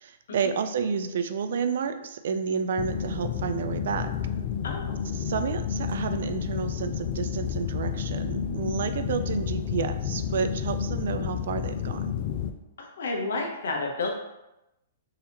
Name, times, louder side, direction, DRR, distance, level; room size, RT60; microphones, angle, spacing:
voice 1, 0.0-4.1 5.2-12.1, right 6 dB, 65° right, 9 dB, 0.3 m, -30 dB
sound 1, 2.8-12.5, left 8 dB, 50° left, 0.3 m, -31 dB
voice 2, 4.6-5.0 12.8-14.1, left 3 dB, 75° left, 1 dB, 0.8 m, -31 dB
3.8 x 2.8 x 2.8 m, 0.92 s
hypercardioid pair, 145°, 0 cm